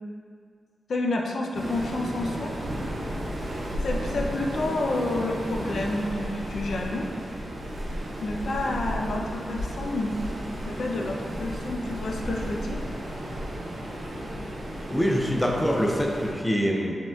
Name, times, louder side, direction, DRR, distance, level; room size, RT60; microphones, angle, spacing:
voice 1, 0.9-2.5 3.8-7.1 8.2-10.2 10.6-12.9, left 2 dB, 75° left, 0 dB, 0.4 m, -29 dB
Waves surf, 1.5-16.3, equal, 65° right, 0.7 m, -33 dB
voice 2, 14.8-16.9, equal, 10° left, 0 dB, 0.4 m, -24 dB
4.9 x 3.5 x 2.3 m, 2.1 s
wide cardioid pair, 155°, 0 cm